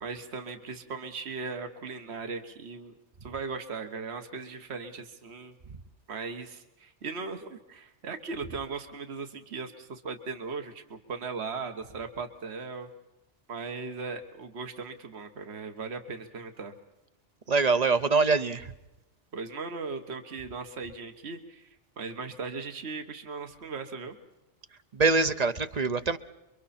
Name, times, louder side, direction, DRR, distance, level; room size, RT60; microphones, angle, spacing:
voice 1, 0.0-2.9 3.2-5.5 6.1-12.9 13.5-16.7 19.3-21.7 22.0-24.1, right 4 dB, 60° right, 7 dB, 1.7 m, -38 dB
voice 2, 17.5-18.7 24.9-26.2, right 4 dB, 40° right, 12 dB, 0.9 m, -24 dB
29.5 x 23.5 x 4.3 m, 0.95 s
omnidirectional pair, 1.2 m